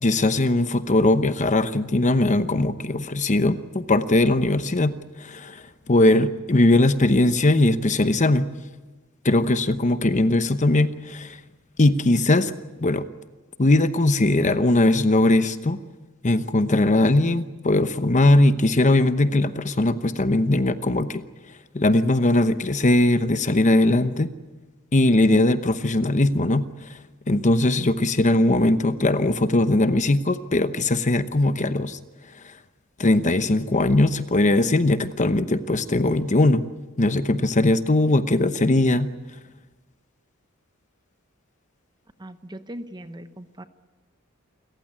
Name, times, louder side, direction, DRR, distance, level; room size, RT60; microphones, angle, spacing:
voice 1, 0.0-4.9 5.2-8.5 9.2-11.4 11.8-12.5 12.8-13.1 13.6-15.8 16.2-21.2 21.7-24.3 24.9-27.0 27.3-32.0 32.4-32.5 33.0-36.7 37.0-39.1, left 2 dB, 35° left, 11 dB, 0.9 m, -20 dB
voice 2, 42.2-43.6, right 1 dB, 20° right, 10 dB, 1.1 m, -39 dB
28.5 x 15.0 x 9.8 m, 1.3 s
head